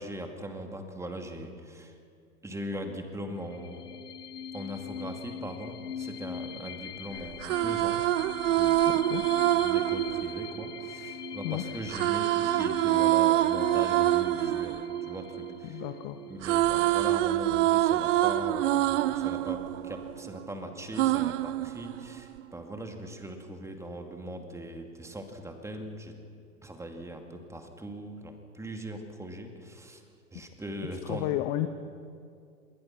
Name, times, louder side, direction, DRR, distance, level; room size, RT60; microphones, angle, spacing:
voice 1, 0.0-2.0 2.4-4.0 4.5-8.0 8.5-15.8 16.3-26.1 26.6-30.0 30.3-31.3, right 1 dB, 5° right, 4 dB, 2.4 m, -40 dB
sound 1, 3.4-16.8, left 8 dB, 80° left, 1.2 m, -42 dB
sound 2, 7.2-11.3 11.9-16.0 16.2-20.5 21.0-22.4, right 14 dB, 50° right, 0.8 m, -26 dB
voice 2, 8.8-9.2 11.4-11.6 15.6-16.2 30.8-31.7, left 15 dB, 35° left, 8 dB, 1.1 m, -32 dB
28.0 x 21.0 x 6.0 m, 2.3 s
hypercardioid pair, 105°, 47 cm